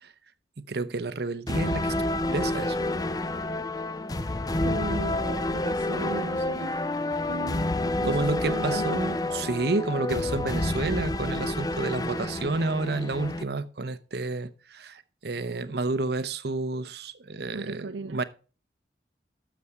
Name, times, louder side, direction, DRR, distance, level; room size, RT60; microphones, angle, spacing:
voice 1, 0.6-1.9 2.3-2.8 8.0-18.2, right 3 dB, 65° right, 0.8 m, -30 dB
sound 1, 1.5-13.4, left 2 dB, 20° left, 0.6 m, -29 dB
voice 2, 4.6-6.7 7.3-7.7 8.0-9.0 17.5-18.2, right 4 dB, 85° right, 0.5 m, -36 dB
13.0 x 6.9 x 4.7 m
head